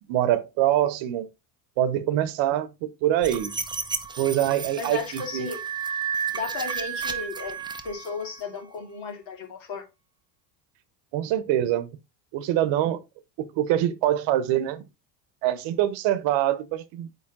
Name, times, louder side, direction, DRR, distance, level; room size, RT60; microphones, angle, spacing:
voice 1, 0.1-1.3 1.8-3.5 4.2-5.5 11.1-11.9 12.3-13.0 13.6-14.8 15.4-17.1, right 12 dB, 65° right, 1.0 m, -24 dB
sound 1, 3.2-8.4, right 6 dB, 10° right, 0.6 m, -32 dB
voice 2, 4.8-5.6 6.3-7.6 7.8-9.8, left 4 dB, 65° left, 2.6 m, -34 dB
8.9 x 3.5 x 3.7 m
supercardioid pair, 110°, 49 cm